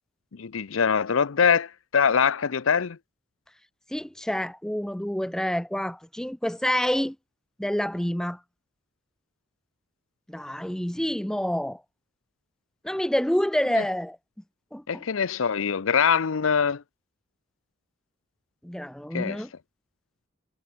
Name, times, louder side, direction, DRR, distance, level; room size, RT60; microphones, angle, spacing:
voice 1, 0.4-3.0 13.7-13.8 14.9-16.8 19.1-19.4, left 6 dB, 80° left, 0.6 m, -23 dB
voice 2, 3.9-7.2 7.6-8.4 10.3-11.8 12.8-14.2 14.7-15.0 18.6-19.5, equal, 5° left, 0.3 m, -28 dB
head